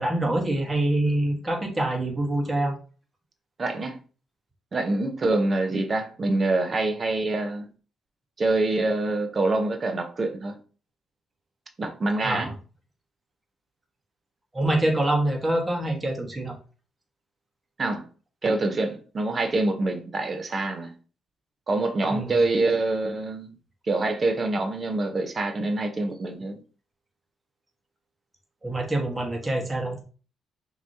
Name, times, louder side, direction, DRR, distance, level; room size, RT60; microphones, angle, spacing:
voice 1, 0.0-2.7 12.2-12.5 14.5-16.5 22.1-22.3 28.6-30.0, right 1 dB, 20° right, 1.5 m, -25 dB
voice 2, 3.6-4.0 4.7-7.7 8.4-10.6 11.8-12.5 17.8-18.0 18.4-20.9 21.7-23.6 23.9-26.6, right 2 dB, 35° right, 0.8 m, -25 dB
6.0 x 3.0 x 2.8 m
cardioid pair, 90°, 0 cm